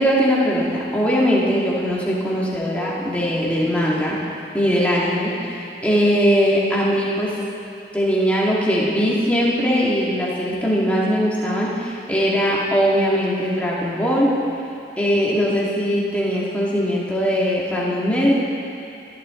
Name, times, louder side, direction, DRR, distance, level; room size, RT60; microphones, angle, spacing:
voice 1, 0.0-4.2 4.5-7.3 7.9-14.3 15.0-18.3, equal, 10° left, -6 dB, 2.1 m, -20 dB
20.5 x 12.5 x 3.8 m, 2.7 s
head